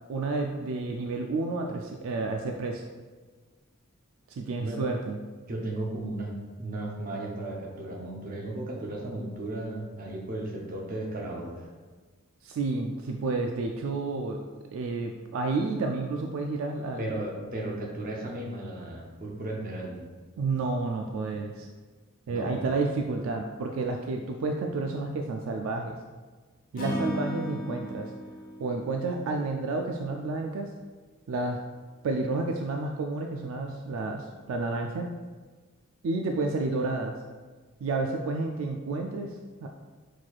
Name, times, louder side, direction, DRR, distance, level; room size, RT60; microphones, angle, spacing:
voice 1, 0.1-2.8 4.3-5.2 12.4-14.4 14.7-17.1 20.4-21.7 22.3-26.0 26.7-28.1 28.6-30.7 31.3-31.6 32.0-35.1 36.0-37.1 37.8-39.7, right 3 dB, 70° right, 3 dB, 0.3 m, -30 dB
voice 2, 5.5-11.7 17.0-20.0 22.3-22.6, right 1 dB, 40° right, -1 dB, 0.7 m, -35 dB
Acoustic guitar / Strum, 26.8-30.0, equal, 40° left, 0.8 m, -36 dB
4.4 x 4.1 x 2.4 m, 1.4 s
head